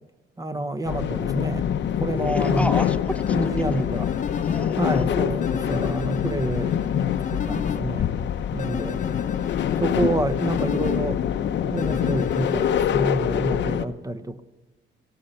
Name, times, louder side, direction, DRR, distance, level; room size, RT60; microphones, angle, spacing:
voice 1, 0.4-2.7 3.3-4.1 4.8-8.1 8.5-9.0 9.8-11.2 11.6-14.4, right 1 dB, 20° right, 1.1 m, -28 dB
sound 1, 0.8-13.8, left 9 dB, 65° left, 0.8 m, -25 dB
voice 2, 2.2-5.9, left 1 dB, 5° left, 0.9 m, -35 dB
sound 2, 3.1-4.6 5.4-7.8 8.6-11.0 11.8-13.2, left 6 dB, 40° left, 1.0 m, -34 dB
17.5 x 14.5 x 5.8 m
cardioid pair, 90°, 20 cm